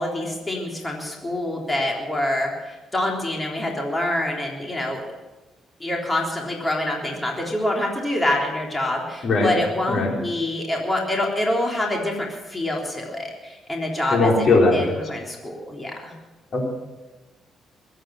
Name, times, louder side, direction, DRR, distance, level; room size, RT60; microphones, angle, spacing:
voice 1, 0.0-5.0 5.8-14.3 14.7-16.1, left 1 dB, 20° left, -1 dB, 3.5 m, -26 dB
voice 2, 14.1-14.9 16.5-16.7, left 3 dB, 55° left, 0 dB, 4.1 m, -19 dB
22.0 x 9.1 x 6.4 m, 1.1 s
cardioid pair, 90°, 0 cm